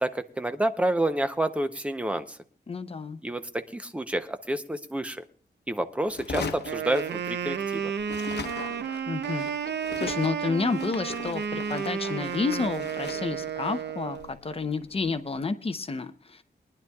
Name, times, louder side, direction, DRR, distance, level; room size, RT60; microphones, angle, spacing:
voice 1, 0.0-2.4 3.2-5.2 5.7-7.9, right 1 dB, 5° right, 9 dB, 0.7 m, -29 dB
voice 2, 2.7-3.2 9.1-9.5 10.0-16.4, left 4 dB, 35° left, 10 dB, 0.7 m, -30 dB
sound 1, 6.1-7.7 8.0-15.2, left 5 dB, 70° left, 0.9 m, -40 dB
Wind instrument woodwind instrument, 6.6-14.3, right 7 dB, 75° right, 0.6 m, -32 dB
22.5 x 11.0 x 2.3 m, 0.43 s
wide cardioid pair, 170°, 18 cm